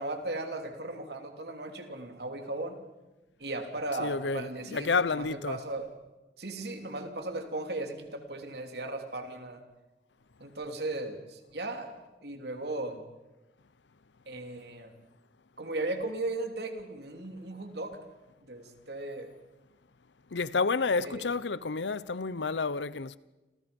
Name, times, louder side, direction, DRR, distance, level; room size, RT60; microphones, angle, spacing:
voice 1, 0.0-2.8 3.4-5.9 6.4-9.6 10.4-11.9 12.2-13.0 14.3-14.9 15.6-18.0 18.4-19.3 21.0-21.3, right 2 dB, 65° right, 3.2 m, -36 dB
voice 2, 4.0-5.6 20.3-23.2, left 4 dB, 85° left, 0.8 m, -30 dB
30.0 x 26.5 x 5.4 m
head